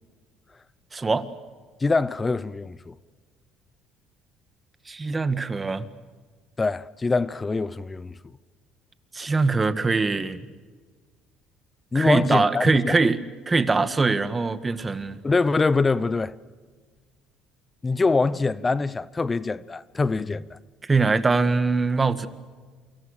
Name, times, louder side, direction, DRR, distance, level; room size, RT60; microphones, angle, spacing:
voice 1, 0.9-1.3 4.9-5.9 9.1-10.4 11.9-13.2 13.5-15.2 20.9-22.3, right 3 dB, 20° right, 1.7 m, -22 dB
voice 2, 1.8-2.9 6.6-8.1 11.9-13.0 15.2-16.3 17.8-20.6, left 3 dB, 20° left, 0.8 m, -24 dB
29.0 x 25.0 x 6.7 m
cardioid pair, 120°, 0 cm